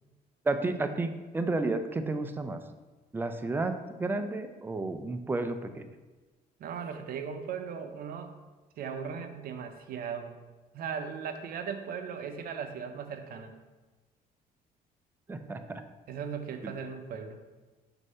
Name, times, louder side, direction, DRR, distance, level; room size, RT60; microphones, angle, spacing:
voice 1, 0.4-2.6 3.1-5.9 15.3-15.8 16.6-16.7, right 2 dB, 10° right, 8 dB, 0.4 m, -32 dB
voice 2, 6.6-8.3 8.8-10.4 10.7-13.6 16.1-17.4, right 6 dB, 60° right, 6 dB, 0.7 m, -38 dB
6.3 x 2.7 x 5.4 m, 1.2 s
cardioid pair, 110°, 17 cm